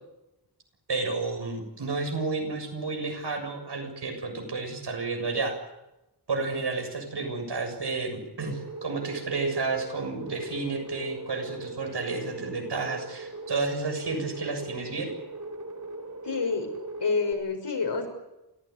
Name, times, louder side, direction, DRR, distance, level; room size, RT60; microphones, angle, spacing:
voice 1, 0.9-5.5 6.3-15.1, right 3 dB, 80° right, 4 dB, 7.2 m, -31 dB
sound 1, 8.5-17.3, right 2 dB, 45° right, 3.9 m, -40 dB
voice 2, 16.2-16.7 17.0-18.1, left 4 dB, 85° left, 4 dB, 6.0 m, -28 dB
28.5 x 16.0 x 9.6 m, 0.94 s
wide cardioid pair, 85°, 40 cm